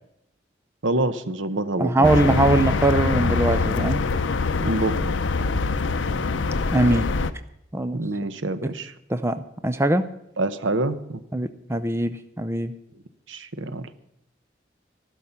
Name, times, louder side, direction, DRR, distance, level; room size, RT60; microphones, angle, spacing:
voice 1, 0.8-2.4 4.6-5.1 7.9-8.9 10.4-11.2 13.3-13.9, right 2 dB, 85° right, 12 dB, 0.9 m, -27 dB
voice 2, 1.8-4.0 6.7-7.1 7.7-8.0 9.1-10.1 11.3-12.7, right 2 dB, 15° right, 10 dB, 0.5 m, -22 dB
sound 1, 2.0-7.3, left 4 dB, 80° left, 0.6 m, -24 dB
14.0 x 12.0 x 5.7 m, 0.79 s
head